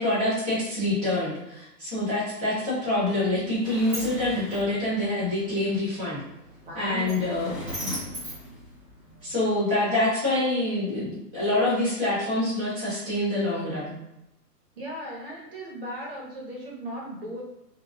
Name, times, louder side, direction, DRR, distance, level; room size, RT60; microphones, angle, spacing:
voice 1, 0.0-6.2 6.7-7.9 9.2-14.0, left 1 dB, 15° left, -15 dB, 0.5 m, -26 dB
Sliding door, 3.0-9.4, equal, 15° right, 1.4 m, -39 dB
voice 2, 6.7-7.3 14.8-17.4, equal, 35° right, -2 dB, 0.8 m, -36 dB
2.9 x 2.3 x 2.4 m, 0.87 s
hypercardioid pair, 150°, 49 cm